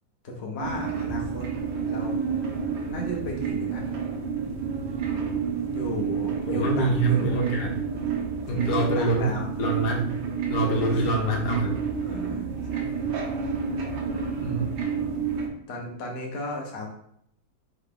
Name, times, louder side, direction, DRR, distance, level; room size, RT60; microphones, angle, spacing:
voice 1, 0.2-1.5 1.9-2.2 2.9-3.9 5.0-5.2 5.7-7.2 8.5-9.5 10.9-11.1 12.0-13.1 14.1-14.2 15.7-16.9, left 1 dB, 50° left, 0 dB, 0.8 m, -35 dB
sound 1, 0.6-15.5, right 6 dB, 80° right, 1.5 m, -29 dB
voice 2, 6.5-7.8 8.5-9.3 9.6-10.2 10.5-11.7 14.4-14.7, right 2 dB, 65° left, 0 dB, 1.3 m, -25 dB
3.8 x 3.1 x 3.7 m, 0.72 s
omnidirectional pair, 2.1 m